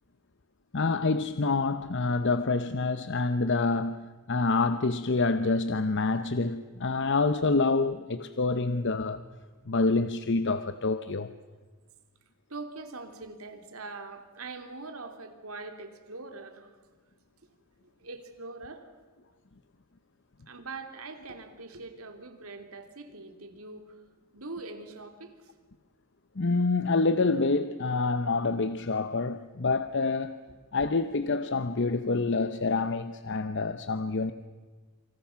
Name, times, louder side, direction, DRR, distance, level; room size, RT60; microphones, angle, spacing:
voice 1, 0.7-9.2 9.7-11.3 26.4-30.4 30.7-34.3, left 3 dB, 55° left, 11 dB, 0.8 m, -27 dB
voice 2, 12.5-16.7 17.8-18.9 20.5-24.0 24.3-25.5, right 3 dB, 70° right, 7 dB, 3.0 m, -43 dB
27.5 x 26.5 x 5.8 m, 1.4 s
head